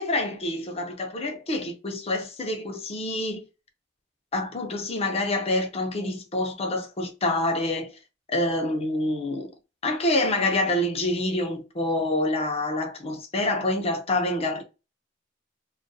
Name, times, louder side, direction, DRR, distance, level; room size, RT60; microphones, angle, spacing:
voice 1, 0.0-3.4 4.3-7.9 8.3-9.5 9.8-14.6, left 1 dB, 35° left, 0.6 m, -27 dB
2.3 x 2.2 x 2.6 m
head